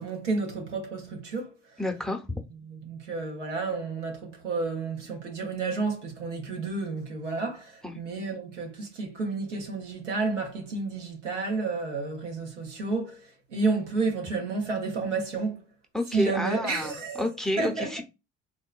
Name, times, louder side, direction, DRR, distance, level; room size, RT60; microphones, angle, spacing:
voice 1, 0.0-1.5 2.6-15.6 16.1-17.3 17.6-18.0, right 3 dB, 85° right, 0.9 m, -31 dB
voice 2, 1.8-2.2 7.8-8.0 15.9-18.0, left 1 dB, ahead, 0.7 m, -30 dB
3.7 x 2.1 x 2.4 m
hypercardioid pair, 55°, 35 cm